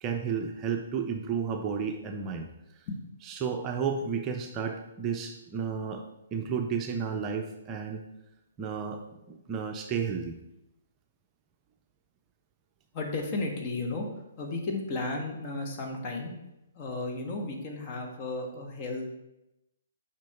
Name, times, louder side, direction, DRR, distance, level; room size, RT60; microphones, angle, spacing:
voice 1, 0.0-2.5 3.3-6.1 6.3-8.1 8.6-9.0 9.3-10.3, right 6 dB, 25° right, 3 dB, 0.6 m, -32 dB
voice 2, 12.9-14.1 14.4-16.3 16.7-19.0, left 2 dB, 35° left, 2 dB, 1.5 m, -34 dB
7.4 x 5.1 x 3.5 m, 0.90 s
figure-of-eight pair, 130°, 0 cm